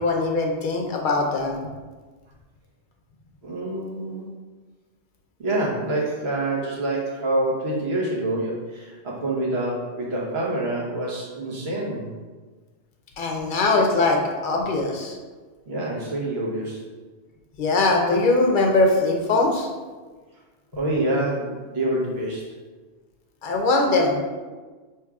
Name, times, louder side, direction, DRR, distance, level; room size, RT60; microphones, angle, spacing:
voice 1, 0.0-1.6 13.2-15.2 17.6-19.7 23.4-24.2, left 2 dB, 55° left, 1 dB, 0.7 m, -21 dB
voice 2, 3.4-4.3 5.4-12.1 15.7-16.9 20.7-22.5, right 1 dB, 65° right, -4 dB, 1.2 m, -26 dB
6.1 x 3.1 x 2.3 m, 1.4 s
omnidirectional pair, 1.1 m